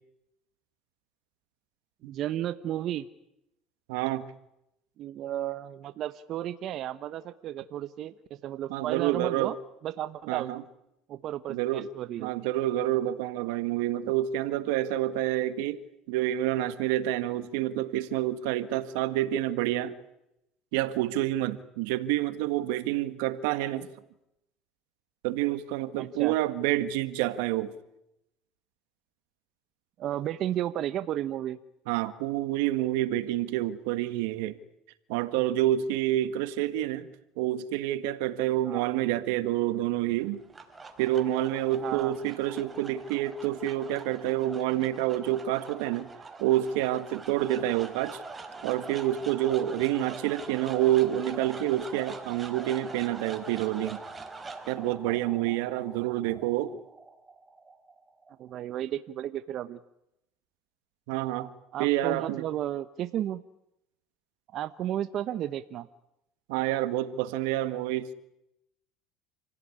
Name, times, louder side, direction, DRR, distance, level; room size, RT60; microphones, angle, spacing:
voice 1, 2.0-3.0 5.0-9.6 9.8-10.5 11.1-12.3 26.0-26.4 30.0-31.6 38.7-39.0 41.8-42.2 58.4-59.8 61.7-63.4 64.5-65.9, right 12 dB, 55° right, 1.0 m, -33 dB
voice 2, 3.9-4.2 8.7-9.5 10.3-10.6 11.5-11.9 12.2-19.9 20.7-23.9 25.2-27.7 31.9-34.6 35.1-37.1 37.4-40.4 41.0-46.1 46.4-48.2 48.6-54.0 54.7-56.8 61.1-61.5 61.8-62.4 66.5-68.1, right 13 dB, 85° right, 1.7 m, -28 dB
sound 1, 40.2-58.5, right 3 dB, 20° right, 4.2 m, -44 dB
28.5 x 17.0 x 9.9 m
supercardioid pair, 100°, 0 cm